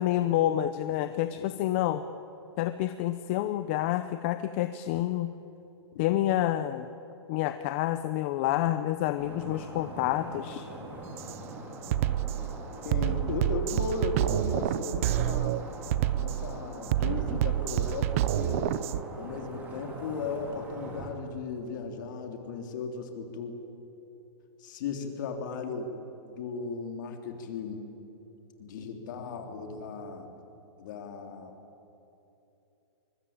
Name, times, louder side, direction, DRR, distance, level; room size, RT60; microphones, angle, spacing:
voice 1, 0.0-2.0 2.6-5.3 6.0-6.9 7.3-10.7, left 13 dB, 25° left, 11 dB, 0.6 m, -28 dB
sound 1, 9.2-21.1, right 1 dB, 10° right, 3.2 m, -43 dB
Drum kit, 11.2-11.3 11.8-19.0, right 13 dB, 30° right, 0.5 m, -28 dB
voice 2, 12.8-15.6 16.1-18.7 19.1-23.5 24.6-25.9 26.2-27.8 28.6-30.3 30.8-31.5, left 4 dB, 45° left, 4 dB, 3.3 m, -36 dB
24.0 x 22.0 x 9.0 m, 3.0 s
hypercardioid pair, 165°, 15 cm